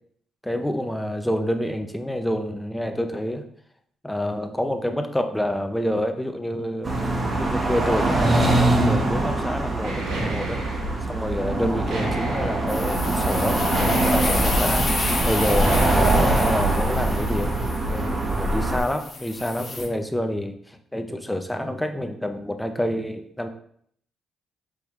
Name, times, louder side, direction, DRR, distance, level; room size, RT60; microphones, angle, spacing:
voice 1, 0.4-3.4 4.0-10.6 11.1-17.6 17.9-23.5, equal, 5° left, 6 dB, 0.5 m, -28 dB
sound 1, 6.8-18.8, right 2 dB, 30° right, 0.9 m, -23 dB
sound 2, 9.8-10.9 11.9-12.7 13.7-14.5 15.6-15.9, right 2 dB, 80° right, 1.3 m, -31 dB
sound 3, 12.7-19.9, left 3 dB, 40° left, 1.1 m, -31 dB
4.8 x 3.3 x 3.1 m, 0.64 s
cardioid pair, 90°, 0 cm